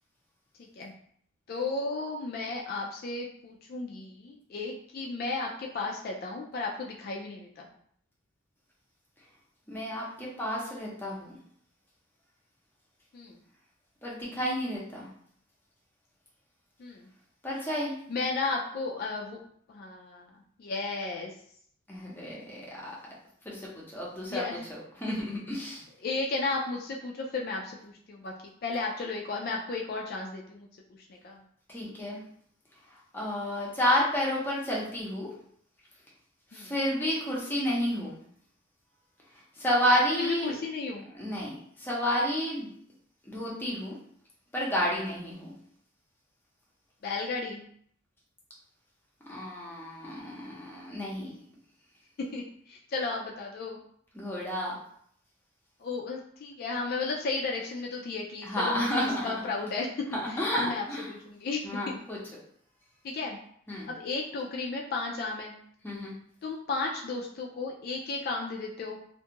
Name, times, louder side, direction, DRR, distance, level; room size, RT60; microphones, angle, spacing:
voice 1, 0.6-0.9 1.5-7.7 13.1-13.4 16.8-17.1 18.1-19.4 19.7-20.3 20.6-21.3 24.3-24.7 25.1-25.2 25.6-25.7 26.0-28.3 28.6-30.7 31.2-31.4 36.5-36.7 40.2-41.0 47.0-47.6 52.2-53.8 55.8-62.0 63.0-63.4 63.9-65.6 66.4-69.0, left 3 dB, 45° left, -1 dB, 0.3 m, -34 dB
voice 2, 9.7-11.3 14.0-15.1 17.4-17.9 21.9-22.9 23.4-24.4 24.7-25.8 31.7-32.2 32.9-35.3 36.5-38.2 39.6-40.6 41.1-42.7 43.3-44.0 44.5-45.5 49.3-51.3 54.1-54.7 58.4-59.3 60.1-61.1 61.6-62.2 63.7-63.9 65.8-66.1, equal, 10° left, -5 dB, 0.6 m, -31 dB
2.5 x 2.3 x 2.8 m, 0.64 s
head